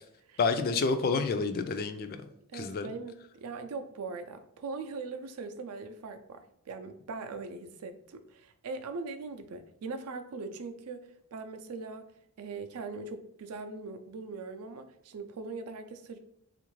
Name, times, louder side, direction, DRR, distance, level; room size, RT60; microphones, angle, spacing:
voice 1, 0.4-2.2 2.5-2.9, left 4 dB, 45° left, 9 dB, 0.3 m, -29 dB
voice 2, 2.5-12.1 12.4-16.2, right 4 dB, 90° right, 7 dB, 0.4 m, -41 dB
3.5 x 2.5 x 3.0 m, 0.76 s
head